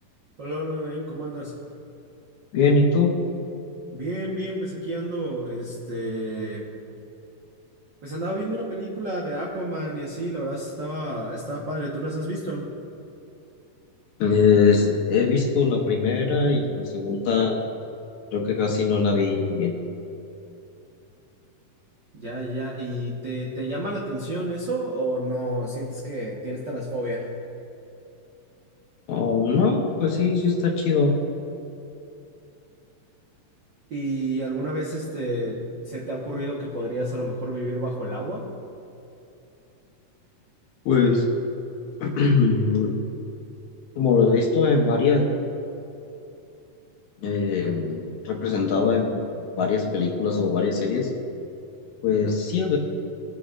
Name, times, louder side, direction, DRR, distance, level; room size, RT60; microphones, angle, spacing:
voice 1, 0.4-1.5 3.9-6.7 8.0-12.7 22.1-27.3 33.9-38.5, right 1 dB, 65° right, -4 dB, 1.1 m, -30 dB
voice 2, 2.5-3.2 14.2-17.6 18.3-19.7 29.1-31.2 40.9-41.2 42.0-42.9 44.0-45.3 47.2-51.1 52.0-52.8, left 4 dB, 65° left, 0 dB, 2.1 m, -21 dB
23.0 x 8.4 x 2.5 m, 2.8 s
omnidirectional pair, 4.0 m